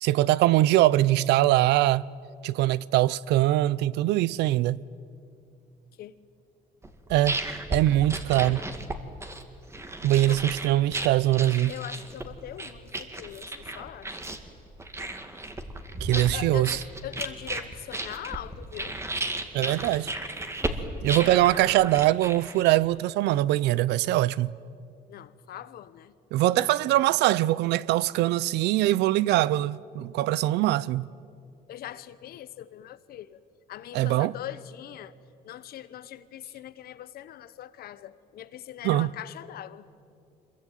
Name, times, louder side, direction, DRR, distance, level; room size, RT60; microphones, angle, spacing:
voice 1, 0.0-2.0 2.4-4.8 7.1-7.4 7.7-8.6 10.0-11.7 16.0-16.8 19.5-20.1 21.0-24.5 26.3-31.1 33.9-34.3 38.8-39.1, right 15 dB, 85° right, 0.6 m, -22 dB
sound 1, 6.8-22.9, right 2 dB, 15° right, 2.2 m, -35 dB
voice 2, 11.7-14.2 16.1-19.0 21.2-21.5 25.1-26.1 26.5-26.7 31.7-33.4 33.7-35.1 35.4-39.9, left 12 dB, 65° left, 1.1 m, -41 dB
26.0 x 22.5 x 9.2 m
cardioid pair, 110°, 17 cm